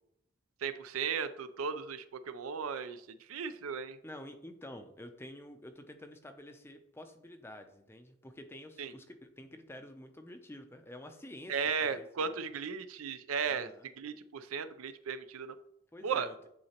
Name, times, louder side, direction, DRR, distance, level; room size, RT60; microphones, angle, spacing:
voice 1, 0.6-3.0 3.3-4.0 8.8-8.9 11.5-13.7 14.0-15.6 16.0-16.3, right 6 dB, 85° right, 11 dB, 0.5 m, -35 dB
voice 2, 4.0-12.5 13.4-13.9 15.9-16.3, left 1 dB, 10° left, 7 dB, 0.4 m, -49 dB
9.5 x 3.8 x 2.9 m, 0.74 s
head